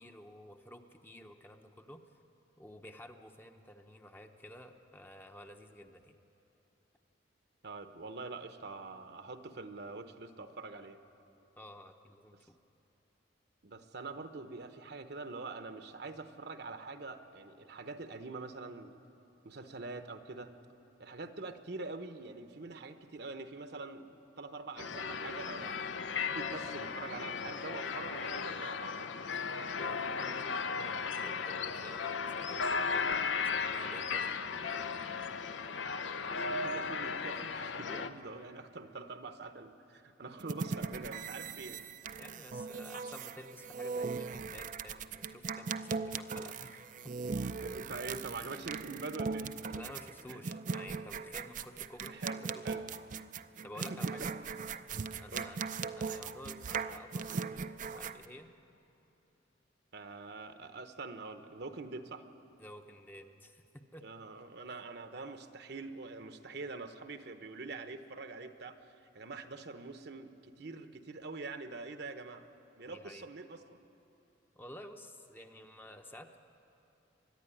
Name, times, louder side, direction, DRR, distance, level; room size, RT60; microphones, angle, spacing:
voice 1, 0.0-2.0 2.6-6.2 11.6-12.4 29.8-33.2 33.4-34.4 42.2-46.9 49.4-52.6 53.6-54.3 55.2-55.6 56.0-58.5 62.6-64.1 72.8-73.3 74.6-76.4, left 1 dB, 10° left, 5 dB, 0.8 m, -51 dB
voice 2, 7.6-11.0 13.6-19.0 19.4-20.5 21.0-25.8 26.2-29.1 36.0-41.8 47.6-49.5 50.3-50.4 52.1-52.8 53.7-54.0 55.1-55.5 59.9-62.3 64.0-72.5 72.8-73.8, right 3 dB, 60° right, 8 dB, 1.0 m, -45 dB
sound 1, 24.8-38.1, left 5 dB, 80° left, 0.7 m, -36 dB
sound 2, 40.4-58.3, right 5 dB, 45° right, 0.5 m, -39 dB
23.0 x 11.5 x 10.0 m, 3.0 s
head